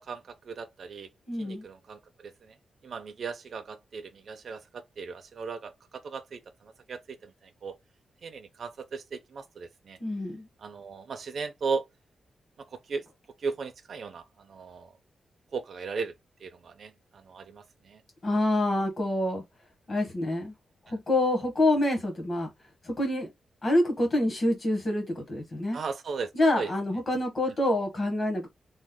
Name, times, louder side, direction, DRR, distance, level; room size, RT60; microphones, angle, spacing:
voice 1, 0.0-1.1 1.4-2.6 2.8-7.8 8.2-10.0 10.6-11.9 12.7-13.1 13.4-14.9 15.5-16.1 16.4-18.0 25.7-26.7 27.5-27.6, right 5 dB, 50° right, 0.4 m, -37 dB
voice 2, 1.3-1.6 10.0-10.5 18.2-19.4 19.9-20.5 20.9-22.5 22.8-23.3 23.6-25.8 26.3-28.5, left 1 dB, 30° left, 1.0 m, -26 dB
3.0 x 2.0 x 3.6 m
wide cardioid pair, 175°, 0 cm